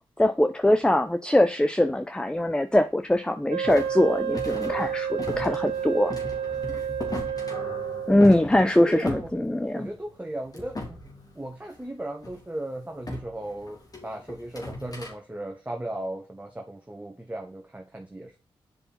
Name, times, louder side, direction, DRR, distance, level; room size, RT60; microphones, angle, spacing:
voice 1, 0.2-6.1 8.1-9.9, left 1 dB, 10° left, 0.7 m, -22 dB
Wind instrument woodwind instrument, 3.5-8.2, right 8 dB, 80° right, 1.1 m, -30 dB
sound 1, 3.6-10.1 10.4-11.8 12.2-12.4 13.0-15.1, left 2 dB, 40° left, 3.0 m, -39 dB
voice 2, 8.8-9.3 9.7-11.0 11.4-18.4, right 1 dB, 15° right, 1.6 m, -36 dB
8.3 x 5.5 x 4.2 m
supercardioid pair, 50°, 10 cm